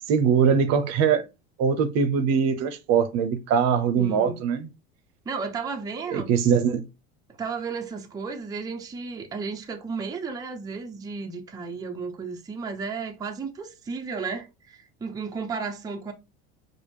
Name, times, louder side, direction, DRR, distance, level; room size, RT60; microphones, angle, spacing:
voice 1, 0.1-1.2 1.6-4.7 6.1-6.8, right 6 dB, 55° right, 0.6 m, -22 dB
voice 2, 4.0-4.4 5.3-6.3 7.4-16.1, right 5 dB, 10° right, 0.5 m, -33 dB
4.8 x 2.0 x 3.4 m
supercardioid pair, 105°, 31 cm